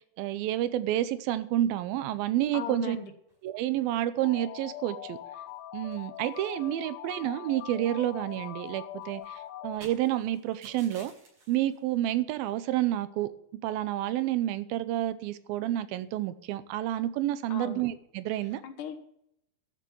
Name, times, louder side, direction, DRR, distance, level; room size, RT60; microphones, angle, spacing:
voice 1, 0.2-3.0 3.4-5.2 5.7-11.1 11.5-13.3 13.6-18.6, right 13 dB, 85° right, 2.5 m, -29 dB
voice 2, 2.5-3.1 17.5-17.8 18.6-19.0, left 7 dB, 65° left, 2.6 m, -38 dB
sound 1, 3.3-3.8 4.2-4.3 4.6-4.7 5.0-5.6 5.9-7.3 7.6-12.0, right 1 dB, 55° right, 7.3 m, -56 dB
sound 2, 4.2-9.8, left 13 dB, 85° left, 2.5 m, -42 dB
13.5 x 6.9 x 7.0 m
omnidirectional pair, 4.2 m